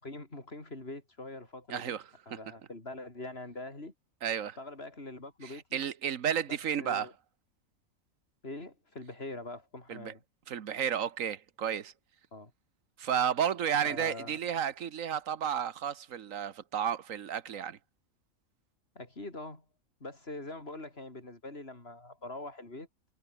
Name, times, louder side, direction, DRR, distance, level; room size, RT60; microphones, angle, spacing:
voice 1, 0.0-2.0 2.3-3.9 4.6-5.8 6.8-7.1 8.4-10.2 12.3-12.5 13.8-14.4 18.9-19.6 20.0-22.9, left 2 dB, 45° left, 4.5 m, -43 dB
voice 2, 1.7-2.0 2.3-2.4 4.2-4.6 5.4-7.1 9.9-10.1 10.5-11.9 13.0-17.8, right 8 dB, 70° right, 1.5 m, -32 dB
omnidirectional pair, 1.5 m